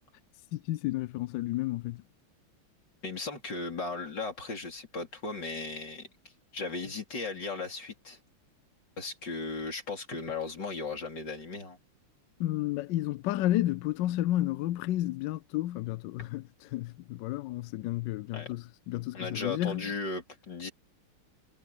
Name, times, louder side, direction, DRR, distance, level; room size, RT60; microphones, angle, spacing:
voice 1, 0.5-2.0 12.4-16.4 16.7-19.9, left 15 dB, 80° left, 1.0 m, -31 dB
voice 2, 3.0-6.1 6.5-8.2 9.0-11.8 16.2-16.3 18.3-18.5 19.1-20.7, left 3 dB, 50° left, 4.7 m, -36 dB
omnidirectional pair, 2.4 m